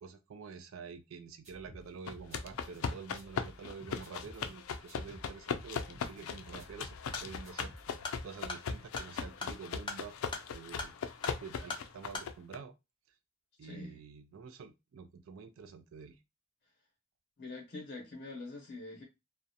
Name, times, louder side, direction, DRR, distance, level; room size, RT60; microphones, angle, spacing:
voice 1, 0.0-10.2 10.5-10.9 11.4-12.7 13.6-16.2, right 5 dB, 70° right, 0.4 m, -48 dB
sound 1, 1.4-2.8 3.2-4.5 4.9-6.3 6.6-8.0, equal, 35° right, 0.7 m, -54 dB
sound 2, 2.1-12.6, left 6 dB, 85° left, 0.4 m, -39 dB
sound 3, 7.1-12.3, left 3 dB, 25° left, 0.5 m, -43 dB
voice 2, 13.6-14.0 17.4-19.0, left 2 dB, 55° left, 0.7 m, -44 dB
2.4 x 2.0 x 2.7 m
head